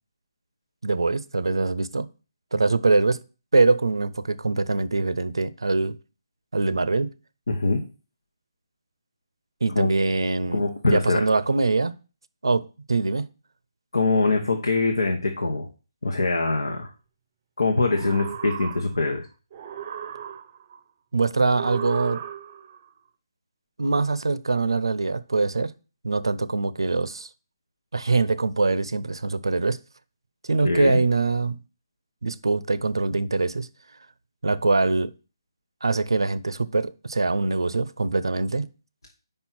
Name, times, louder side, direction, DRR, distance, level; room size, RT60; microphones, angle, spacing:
voice 1, 0.8-2.1 2.5-3.2 3.5-6.0 6.5-7.1 9.6-10.6 10.9-11.9 12.4-13.3 21.1-22.2 23.8-25.7 26.0-27.3 27.9-29.8 30.4-31.6 32.2-33.7 34.4-35.1 35.8-38.7, right 3 dB, 90° right, 0.5 m, -23 dB
voice 2, 7.5-7.8 9.7-9.9 10.5-11.2 13.9-15.7 16.0-16.9 17.6-19.2 30.6-31.0, left 3 dB, 85° left, 1.1 m, -23 dB
sound 1, 17.7-19.2 19.5-20.8 21.5-22.8, right 9 dB, 35° right, 0.5 m, -35 dB
5.4 x 4.4 x 5.9 m
hypercardioid pair, 155°, 2 cm